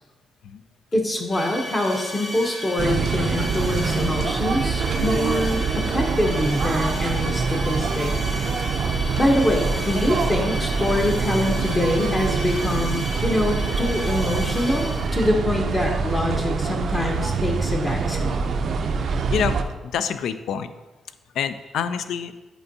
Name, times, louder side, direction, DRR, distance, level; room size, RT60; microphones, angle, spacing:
voice 1, 0.9-8.1 9.2-18.4, left 1 dB, 20° left, 2 dB, 0.8 m, -24 dB
sound 1, 1.3-15.4, left 1 dB, 60° left, 1.3 m, -34 dB
sound 2, 2.8-19.6, right 5 dB, 55° right, 0.4 m, -25 dB
Ringtone, 7.4-9.1 11.6-13.3, right 4 dB, 90° right, 0.8 m, -38 dB
voice 2, 19.8-20.7 21.3-22.3, left 7 dB, 80° left, 12 dB, 0.3 m, -26 dB
8.0 x 4.4 x 2.7 m, 1.1 s
cardioid pair, 125°, 0 cm